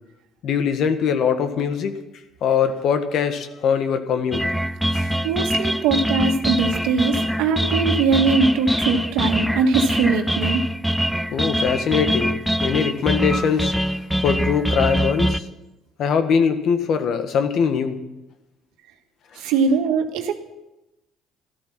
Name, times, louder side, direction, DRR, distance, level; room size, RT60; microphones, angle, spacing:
voice 1, 0.4-2.0 2.4-4.4 4.9-5.1 11.3-13.7 14.2-15.4 16.0-18.0, left 7 dB, 65° left, 8 dB, 1.6 m, -22 dB
sound 1, 4.3-15.4, equal, ahead, 0.7 m, -23 dB
voice 2, 5.2-10.6 19.4-20.4, right 4 dB, 80° right, 5 dB, 1.6 m, -21 dB
13.5 x 13.0 x 6.0 m, 0.95 s
supercardioid pair, 70°, 0 cm